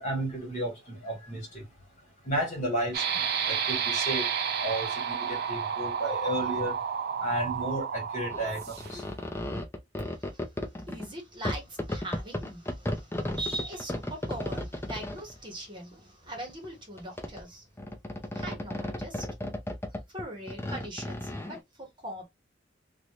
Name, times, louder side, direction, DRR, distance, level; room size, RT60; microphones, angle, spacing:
voice 1, 0.0-1.4 2.3-4.3 4.6-6.7 7.2-9.0, right 1 dB, 40° left, 1.9 m, -33 dB
sound 1, 2.9-9.1, right 7 dB, 55° right, 0.6 m, -31 dB
sound 2, 8.3-11.1 11.5-15.4 16.2-16.7 17.0-17.4 17.8-21.6, left 1 dB, 15° left, 0.6 m, -35 dB
voice 2, 10.0-17.7 18.3-19.3 19.9-22.2, right 1 dB, 25° right, 1.4 m, -41 dB
3.0 x 2.6 x 3.0 m
head